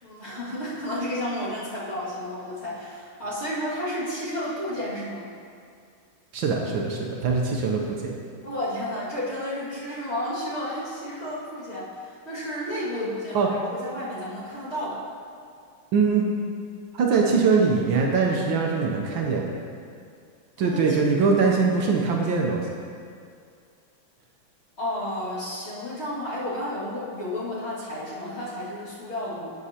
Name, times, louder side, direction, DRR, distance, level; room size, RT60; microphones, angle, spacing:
voice 1, 0.0-5.3 8.4-15.0 20.6-20.9 24.8-29.5, left 1 dB, 30° left, -10 dB, 2.3 m, -32 dB
voice 2, 6.3-8.1 13.3-13.5 15.9-16.2 16.9-19.5 20.6-22.7, right 4 dB, 70° right, 0 dB, 1.5 m, -22 dB
11.0 x 7.7 x 2.9 m, 2.3 s
omnidirectional pair, 2.3 m